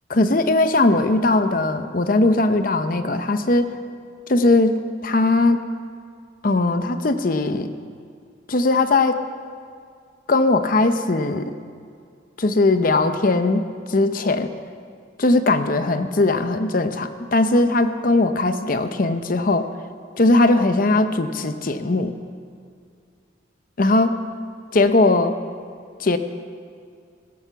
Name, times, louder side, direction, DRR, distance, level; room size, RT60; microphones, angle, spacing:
voice 1, 0.1-3.8 4.3-5.6 6.4-7.7 8.5-9.2 10.3-11.6 12.4-14.5 15.2-19.7 20.2-22.1 23.8-24.1 24.7-25.3 26.0-26.2, left 2 dB, 45° left, 9 dB, 0.7 m, -19 dB
16.5 x 12.0 x 6.9 m, 2.3 s
head